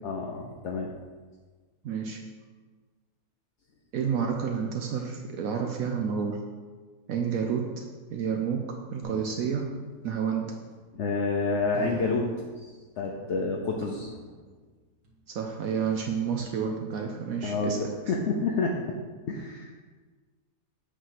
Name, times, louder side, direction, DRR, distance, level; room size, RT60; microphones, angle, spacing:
voice 1, 0.0-0.9 10.9-12.3 12.6-12.7 13.0-14.1 17.4-19.0 19.3-19.7, left 3 dB, 60° left, 0 dB, 0.8 m, -29 dB
voice 2, 1.8-2.2 3.9-6.4 7.1-7.8 8.1-9.7 10.0-10.5 15.3-18.2, right 7 dB, 65° right, 2 dB, 1.0 m, -30 dB
sound 1, 9.0-9.9 10.7-11.2 11.7-12.5 13.1-13.7 14.0-14.8 15.0-15.5 15.9-16.5, right 3 dB, 85° right, 2.0 m, -44 dB
8.1 x 3.2 x 5.8 m, 1.4 s
omnidirectional pair, 1.7 m